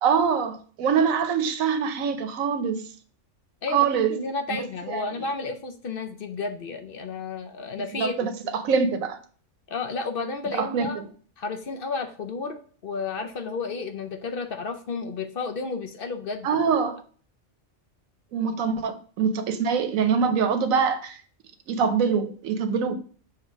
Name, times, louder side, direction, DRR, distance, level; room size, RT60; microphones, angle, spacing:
voice 1, 0.0-2.8 3.7-4.2 4.9-5.0 7.8-9.2 10.6-11.1 16.4-17.0 18.3-21.2 21.7-22.9, right 6 dB, 85° right, 1.2 m, -24 dB
voice 2, 3.6-8.6 9.7-11.0 11.4-16.8, left 4 dB, 55° left, 0.7 m, -32 dB
6.7 x 2.9 x 5.0 m
omnidirectional pair, 1.4 m